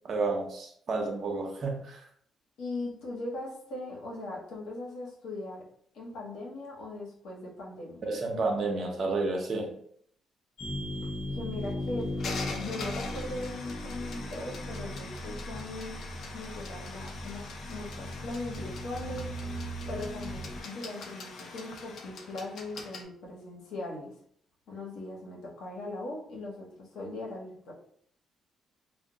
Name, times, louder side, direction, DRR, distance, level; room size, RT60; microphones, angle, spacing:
voice 1, 0.0-2.0 8.0-9.8, right 3 dB, 50° right, 0.7 m, -31 dB
voice 2, 2.6-5.6 5.9-8.1 11.3-12.1 12.6-16.0 16.3-19.3 19.9-24.1 24.7-27.7, left 2 dB, 85° left, 0.9 m, -39 dB
sound 1, 10.6-23.0, left 3 dB, 60° left, 0.5 m, -43 dB
sound 2, 10.6-20.6, equal, 15° left, 0.6 m, -38 dB
2.2 x 2.1 x 3.8 m
cardioid pair, 90°, 0 cm